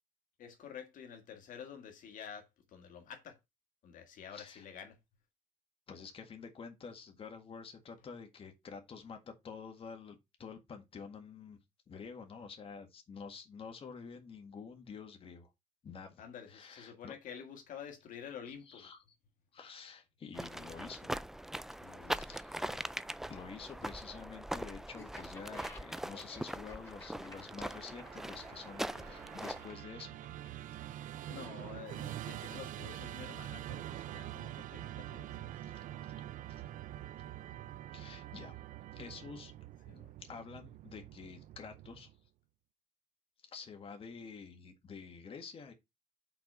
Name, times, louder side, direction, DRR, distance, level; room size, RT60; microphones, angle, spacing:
voice 1, 0.4-3.4 3.8-5.0 16.2-18.9 21.8-22.2 22.6-22.8 31.3-35.5 39.9-40.1, left 8 dB, 75° left, 1.7 m, -49 dB
voice 2, 4.3-4.7 5.9-11.6 11.9-15.5 15.8-17.1 18.7-19.0 19.5-21.0 22.2-22.7 23.3-30.2 35.6-35.7 36.5-36.6 37.9-38.5 38.9-39.5 40.2-42.1 43.4-45.7, left 5 dB, 40° left, 1.8 m, -49 dB
sound 1, 20.3-29.8, right 1 dB, 5° right, 0.3 m, -41 dB
Laughter, 24.9-30.7, left 2 dB, 20° left, 3.1 m, -54 dB
Musical instrument, 26.9-42.3, right 13 dB, 75° right, 0.4 m, -46 dB
5.9 x 4.5 x 5.5 m
cardioid pair, 125°, 14 cm